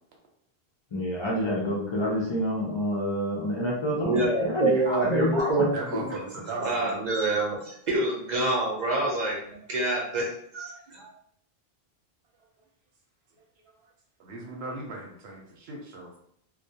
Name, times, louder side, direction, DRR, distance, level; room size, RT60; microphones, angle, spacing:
voice 1, 0.9-5.7 5.9-6.2, left 1 dB, 40° left, -5 dB, 0.4 m, -28 dB
voice 2, 4.0-5.8 6.6-11.1, right 2 dB, 50° right, -3 dB, 0.7 m, -27 dB
voice 3, 5.7-7.0 14.2-16.1, right 3 dB, 90° right, 0 dB, 0.8 m, -37 dB
2.2 x 2.1 x 2.7 m, 0.68 s
omnidirectional pair, 1.0 m